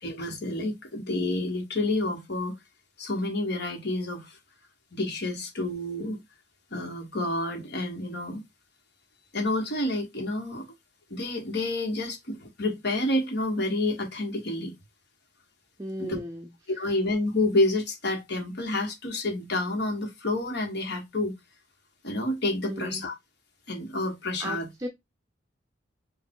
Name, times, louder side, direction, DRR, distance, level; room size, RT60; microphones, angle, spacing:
voice 1, 0.0-2.5 3.0-4.4 4.9-6.2 6.7-8.4 9.3-10.6 11.1-14.7 16.0-16.2 16.8-21.3 22.0-23.1 23.7-24.7, left 2 dB, 60° left, 1.5 m, -29 dB
voice 2, 15.8-16.5 16.7-16.9 22.7-23.1 24.4-24.9, right 1 dB, 20° right, 0.5 m, -36 dB
4.6 x 2.5 x 3.7 m
head